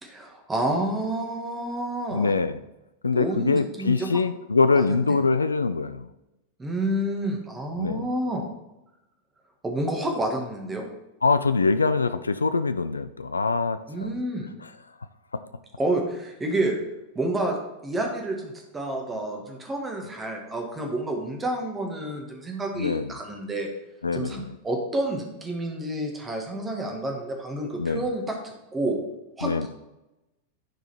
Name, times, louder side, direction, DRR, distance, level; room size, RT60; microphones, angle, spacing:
voice 1, 0.0-2.3 3.1-4.1 4.7-5.2 6.6-8.5 9.6-10.9 13.9-14.5 15.8-16.8 17.2-17.6 17.8-23.7 24.1-29.0 29.4-29.7, right 1 dB, 15° right, 1 dB, 1.8 m, -29 dB
voice 2, 2.1-2.6 3.0-6.1 7.8-8.1 11.2-14.2 15.3-15.4 22.8-23.1 24.0-24.6 27.8-28.0 29.4-29.7, left 4 dB, 75° left, 12 dB, 0.4 m, -24 dB
10.5 x 4.8 x 4.4 m, 0.94 s
figure-of-eight pair, 90°, 0 cm